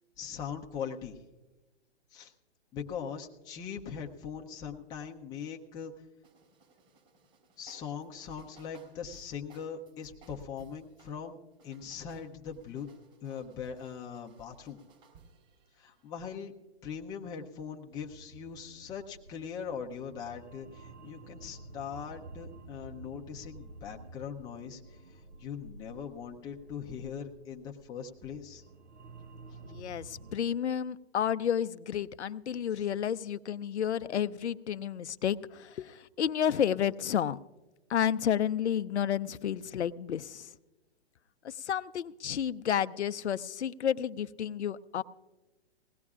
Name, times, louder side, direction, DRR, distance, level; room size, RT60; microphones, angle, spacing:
voice 1, 0.2-1.2 2.1-2.3 2.7-5.9 7.6-11.4 11.6-12.9 13.2-14.8 15.8-16.5 16.8-28.6 32.8-32.9, left 7 dB, 10° left, 1 dB, 0.5 m, -41 dB
sound 1, 6.2-11.2 11.5-16.1, right 5 dB, 35° right, 4.1 m, -61 dB
sound 2, 17.9-30.4, right 2 dB, 90° right, 0.9 m, -51 dB
voice 2, 29.7-37.4 37.9-40.5 41.4-45.0, left 9 dB, 90° left, 13 dB, 0.6 m, -31 dB
20.0 x 17.0 x 2.4 m, 1.1 s
hypercardioid pair, 135°, 33 cm